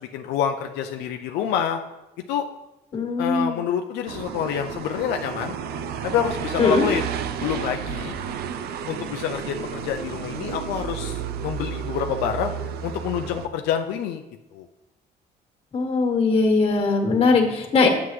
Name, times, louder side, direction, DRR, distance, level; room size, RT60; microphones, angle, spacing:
voice 1, 0.0-1.8 2.3-2.4 3.2-5.5 6.0-7.1 7.4-8.2 8.9-12.5 12.8-14.2 14.5-14.7, left 9 dB, 85° left, 4 dB, 0.5 m, -27 dB
voice 2, 2.9-3.6 6.6-6.9 15.7-17.9, left 4 dB, 35° left, 2 dB, 1.6 m, -20 dB
sound 1, 4.1-13.5, right 8 dB, 70° right, 0.5 m, -32 dB
7.7 x 7.0 x 3.2 m, 1.0 s
cardioid pair, 110°, 17 cm